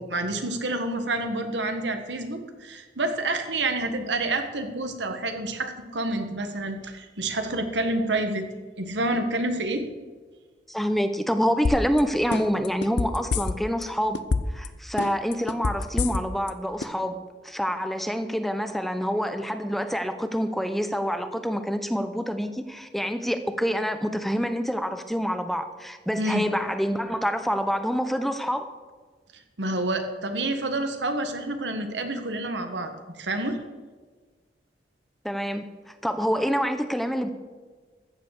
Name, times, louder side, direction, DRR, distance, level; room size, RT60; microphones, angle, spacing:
voice 1, 0.0-8.5 8.8-9.8 26.2-26.4 29.6-33.6, right 2 dB, 90° right, 6 dB, 1.6 m, -28 dB
voice 2, 10.7-14.2 14.5-17.2 17.4-28.7 35.2-35.7 36.0-37.3, equal, ahead, 8 dB, 0.7 m, -27 dB
sound 1, 11.6-12.0 12.3-13.8 14.1-14.7 15.0-16.5 16.8-16.9, left 4 dB, 75° left, 0.7 m, -26 dB
14.0 x 7.4 x 6.6 m, 1.4 s
head